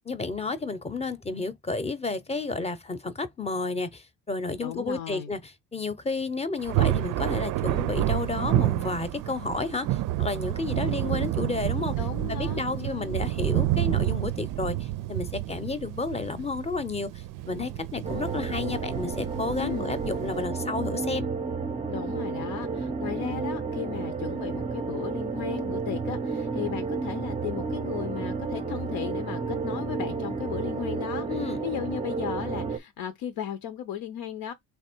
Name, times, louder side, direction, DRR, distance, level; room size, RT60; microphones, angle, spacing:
voice 1, 0.0-12.0 12.3-21.3 31.3-31.6, left 3 dB, 15° left, 0.7 m, -31 dB
voice 2, 4.6-5.3 12.0-13.2 19.6-19.9 21.9-31.3 31.6-34.5, left 10 dB, 75° left, 0.8 m, -35 dB
Thunder, 6.6-20.5, right 15 dB, 60° right, 0.5 m, -29 dB
sound 1, 18.0-32.8, right 4 dB, 15° right, 0.6 m, -31 dB
3.4 x 2.9 x 4.4 m
supercardioid pair, 85°, 37 cm